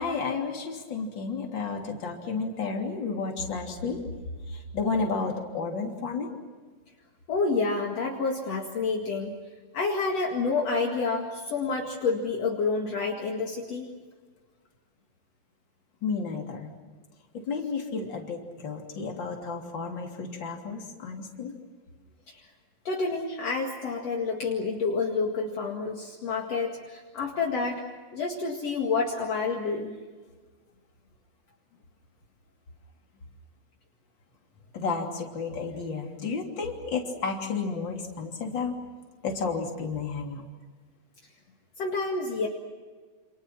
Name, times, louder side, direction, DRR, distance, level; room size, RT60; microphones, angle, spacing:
voice 1, 0.0-4.0 4.5-6.3 16.0-16.7 17.4-21.5 34.7-38.8 39.2-40.4, left 4 dB, 35° left, 1 dB, 3.6 m, -32 dB
voice 2, 7.3-9.3 9.7-13.9 22.3-22.4 22.8-27.8 28.1-30.0 41.8-42.5, left 4 dB, 55° left, 0 dB, 3.0 m, -28 dB
29.0 x 27.5 x 6.0 m, 1.5 s
omnidirectional pair, 3.7 m